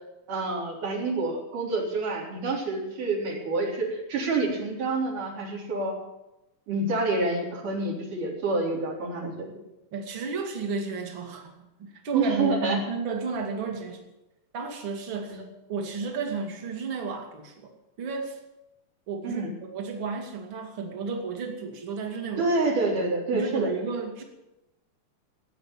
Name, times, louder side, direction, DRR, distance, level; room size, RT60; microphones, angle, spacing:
voice 1, 0.3-5.9 6.7-9.5 12.1-12.8 15.3-15.4 19.2-19.5 22.4-23.7, right 3 dB, 65° right, -2 dB, 5.4 m, -27 dB
voice 2, 9.9-14.0 14.5-15.4 15.7-17.7 18.0-18.4 19.1-22.5 23.3-24.2, right 4 dB, 40° right, 3 dB, 2.7 m, -32 dB
16.5 x 9.4 x 8.9 m, 0.94 s
omnidirectional pair, 4.0 m